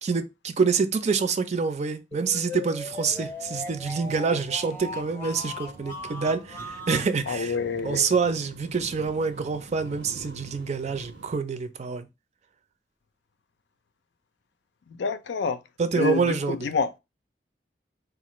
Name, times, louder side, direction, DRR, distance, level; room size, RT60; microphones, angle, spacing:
voice 1, 0.0-7.6 7.8-12.1 15.8-16.7, right 5 dB, 40° right, 0.4 m, -26 dB
sound 1, 2.1-7.1, left 2 dB, 10° left, 0.6 m, -38 dB
sound 2, 3.0-11.4, right 3 dB, 85° right, 0.6 m, -47 dB
voice 2, 7.3-8.1 15.0-15.6 15.9-16.9, left 5 dB, 90° left, 0.5 m, -27 dB
4.0 x 2.4 x 3.0 m
head